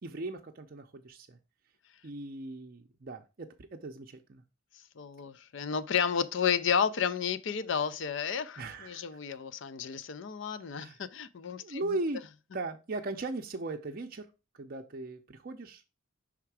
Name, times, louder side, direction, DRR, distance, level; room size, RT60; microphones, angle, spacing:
voice 1, 0.0-1.4 2.0-4.4 8.6-9.2 10.7-11.0 11.6-12.2 12.5-14.3 14.6-15.8, right 2 dB, 45° right, 0.5 m, -38 dB
voice 2, 5.0-11.8, left 7 dB, 60° left, 0.5 m, -32 dB
5.8 x 3.6 x 4.7 m
head